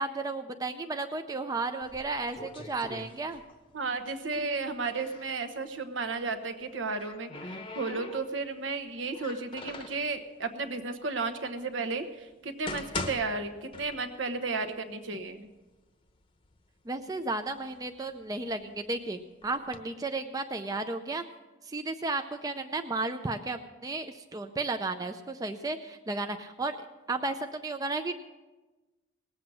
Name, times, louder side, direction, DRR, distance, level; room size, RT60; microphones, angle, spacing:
voice 1, 0.0-3.4 16.9-21.2 21.6-26.8 27.1-28.2, right 3 dB, 20° right, 7 dB, 0.5 m, -33 dB
sound 1, 1.8-3.7 4.0-5.4 6.5-8.6 9.1-10.1 10.8-10.9 11.6-11.7 12.3-14.3 14.6-14.7 15.4-15.5 15.9-16.6 17.1-18.8 19.4-19.8, left 3 dB, 25° left, 0.8 m, -41 dB
voice 2, 3.7-15.5, right 3 dB, 70° right, 8 dB, 1.1 m, -33 dB
19.0 x 7.9 x 6.2 m, 1.2 s
head